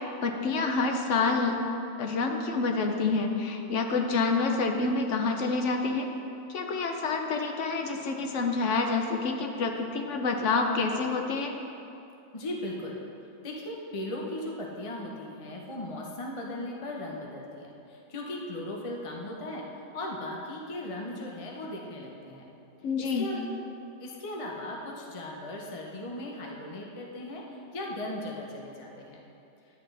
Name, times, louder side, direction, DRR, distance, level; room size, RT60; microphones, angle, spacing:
voice 1, 0.2-1.6 2.0-6.1 6.5-11.5 22.8-23.3, left 4 dB, 60° left, 3 dB, 0.8 m, -28 dB
voice 2, 12.3-13.0 13.4-22.4 23.0-23.4 24.0-29.2, left 1 dB, 30° left, -2 dB, 0.6 m, -37 dB
10.5 x 8.3 x 3.3 m, 2.8 s
omnidirectional pair, 1.8 m